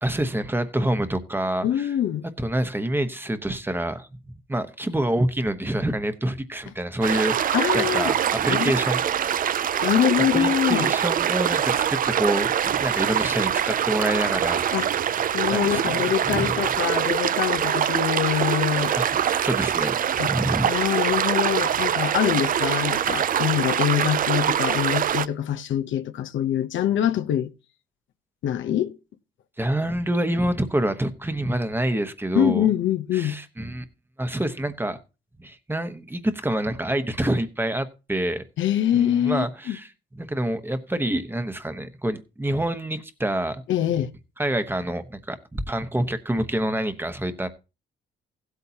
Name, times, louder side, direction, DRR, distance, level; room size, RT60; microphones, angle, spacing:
voice 1, 0.0-1.9 2.4-4.1 4.5-9.0 10.3-14.6 15.5-16.6 18.9-20.7 29.6-32.7 33.1-33.8 34.2-35.0 35.4-38.4 38.9-39.9 40.1-43.6 44.4-47.5, right 1 dB, 10° right, 1.1 m, -27 dB
voice 2, 1.6-2.3 7.5-8.1 8.5-8.7 9.8-10.9 14.7-14.9 15.3-18.9 20.2-20.3 20.6-27.5 28.4-28.9 32.3-33.4 38.6-39.8 43.7-44.1, left 10 dB, 75° left, 0.8 m, -24 dB
sound 1, 7.0-25.3, right 9 dB, 45° right, 0.5 m, -24 dB
15.5 x 8.3 x 2.8 m
cardioid pair, 90°, 20 cm